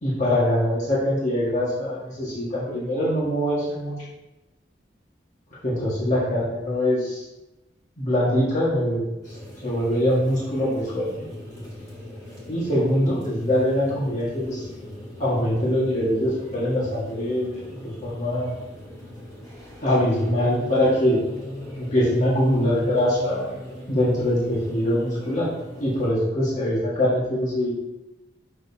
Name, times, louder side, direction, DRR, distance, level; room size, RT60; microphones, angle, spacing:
voice 1, 0.0-3.9 5.6-7.2 8.0-9.3 9.6-11.2 12.5-14.7 15.2-18.6 19.8-21.2 21.8-23.5 23.9-25.5 25.8-27.7, left 1 dB, 45° left, -8 dB, 1.8 m, -23 dB
sound 1, 9.2-26.1, left 1 dB, 20° left, 2.3 m, -38 dB
7.7 x 6.4 x 2.8 m, 0.98 s
head